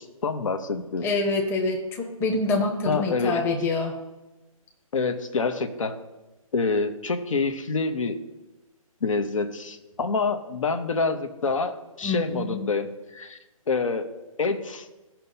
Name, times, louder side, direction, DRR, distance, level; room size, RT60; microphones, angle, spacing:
voice 1, 0.0-1.1 2.8-3.5 4.9-6.0 6.5-8.2 9.0-13.4 13.7-14.1 14.4-14.9, left 4 dB, 65° left, 8 dB, 1.0 m, -27 dB
voice 2, 1.0-4.0 12.0-12.6, left 3 dB, 10° left, 2 dB, 1.0 m, -26 dB
16.0 x 5.8 x 2.7 m, 1.1 s
figure-of-eight pair, 145°, 18 cm